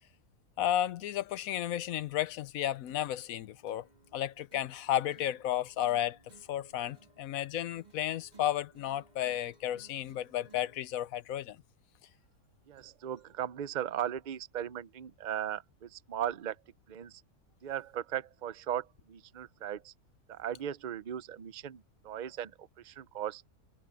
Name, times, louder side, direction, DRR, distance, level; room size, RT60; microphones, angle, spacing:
voice 1, 0.6-3.9 4.1-6.2 6.5-11.6, left 12 dB, 75° left, 1.0 m, -33 dB
sound 1, 2.9-10.9, right 4 dB, 30° right, 2.4 m, -61 dB
voice 2, 12.7-16.6 16.9-17.2 17.6-19.9 20.3-23.4, right 10 dB, 75° right, 0.4 m, -37 dB
omnidirectional pair, 1.6 m